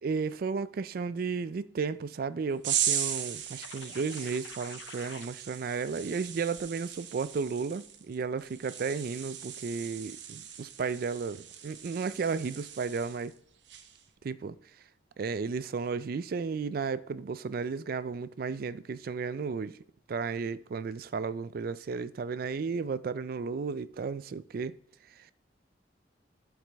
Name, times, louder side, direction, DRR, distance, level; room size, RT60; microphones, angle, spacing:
voice 1, 0.0-13.3 14.2-14.6 15.2-19.8 20.1-24.8, right 5 dB, 50° right, 0.3 m, -33 dB
sound 1, 2.6-13.3 13.7-14.0, right 9 dB, 70° right, 0.8 m, -37 dB
sound 2, 3.6-5.3, left 7 dB, 85° left, 0.6 m, -48 dB
11.5 x 4.7 x 3.4 m
head